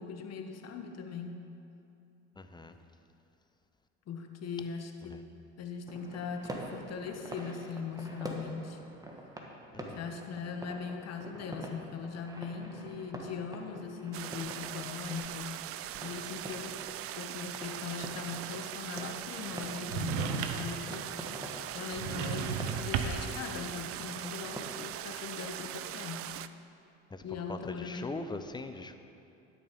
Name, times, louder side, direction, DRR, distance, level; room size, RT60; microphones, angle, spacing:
voice 1, 0.0-1.4 4.1-5.2 5.6-8.8 9.9-15.5 16.0-16.8 17.1-21.1 21.7-26.2 27.2-28.1, left 5 dB, 45° left, 5 dB, 1.3 m, -40 dB
voice 2, 2.4-2.7 9.7-10.0 27.1-27.2 27.5-28.9, left 2 dB, 10° left, 8 dB, 0.7 m, -40 dB
sound 1, 5.9-24.8, right 1 dB, 10° right, 1.5 m, -46 dB
sound 2, 14.1-26.5, right 12 dB, 40° right, 0.4 m, -41 dB
sound 3, 19.9-20.8 21.9-23.3, right 7 dB, 70° right, 0.9 m, -34 dB
12.0 x 6.8 x 5.3 m, 2.7 s
hypercardioid pair, 70°, 35 cm